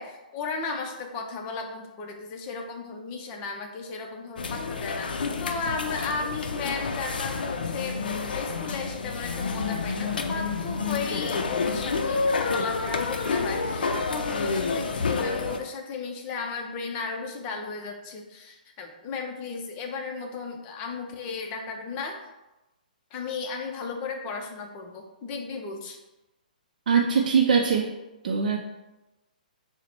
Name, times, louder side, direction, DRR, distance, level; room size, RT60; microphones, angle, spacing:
voice 1, 0.0-22.2 23.1-26.0, left 4 dB, 30° left, 2 dB, 0.6 m, -35 dB
sound 1, 4.4-15.6, left 4 dB, 80° left, 0.4 m, -29 dB
voice 2, 26.9-27.9 28.2-28.6, right 6 dB, 65° right, 1 dB, 0.5 m, -22 dB
3.9 x 2.1 x 4.3 m, 1.0 s
hypercardioid pair, 150°, 5 cm